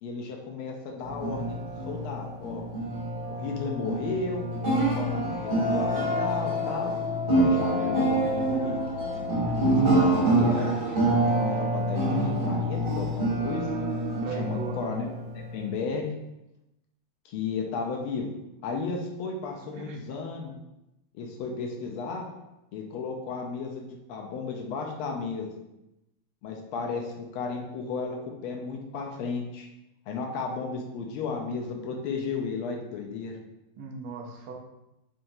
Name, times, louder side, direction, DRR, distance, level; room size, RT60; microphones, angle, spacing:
voice 1, 0.0-1.6 1.9-2.6 3.3-4.5 4.9-6.9 7.3-8.8 9.9-10.7 11.2-13.7 14.3-16.1 17.2-18.3 18.6-20.6 21.1-22.3 22.7-25.5 26.4-29.7 30.1-33.4, left 4 dB, 80° left, 1 dB, 1.4 m, -34 dB
sound 1, 1.0-15.7, right 2 dB, 40° right, 0.8 m, -26 dB
Wind instrument woodwind instrument, 5.4-10.1, left 7 dB, 65° left, 0.6 m, -33 dB
voice 2, 14.2-14.8 19.7-20.0 33.8-34.5, right 5 dB, 80° right, 0 dB, 0.8 m, -37 dB
4.5 x 2.8 x 2.6 m, 0.90 s
omnidirectional pair, 2.4 m